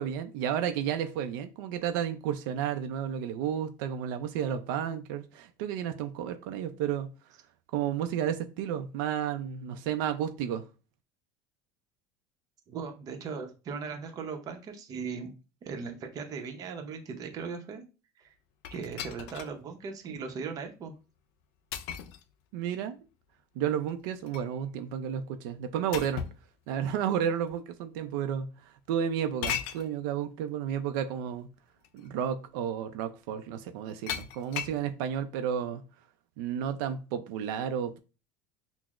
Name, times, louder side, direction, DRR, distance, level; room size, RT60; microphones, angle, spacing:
voice 1, 0.0-7.1 7.7-10.6 22.5-23.0 23.6-26.2 26.7-31.5 31.9-35.8 36.4-38.0, right 9 dB, 80° right, 0.4 m, -32 dB
voice 2, 12.7-15.3 15.6-17.8 18.2-18.3 18.7-20.9, right 5 dB, 35° right, 0.7 m, -38 dB
sound 1, 18.6-19.6 20.1-20.2 21.7-22.2 23.9-24.6 25.9-26.4 27.5-27.6 29.4-29.9 31.3-31.4 31.8-32.1 34.1-34.8, left 9 dB, 65° left, 0.4 m, -37 dB
5.8 x 2.0 x 2.4 m
cardioid pair, 150°, 11 cm